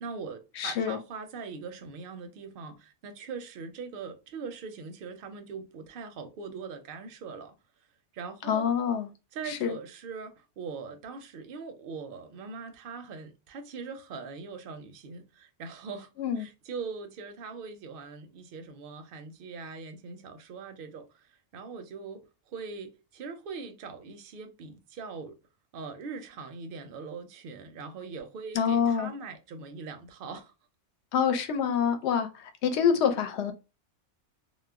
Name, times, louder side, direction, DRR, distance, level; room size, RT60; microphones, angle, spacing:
voice 1, 0.0-7.5 8.1-8.6 9.3-16.1 16.4-25.4 25.7-30.5, right 5 dB, 60° right, 0.6 m, -41 dB
voice 2, 0.6-1.0 8.4-9.1 9.4-9.7 16.2-16.5 28.5-29.1 31.1-33.5, left 7 dB, 70° left, 0.8 m, -26 dB
2.2 x 2.0 x 3.4 m
omnidirectional pair, 1.2 m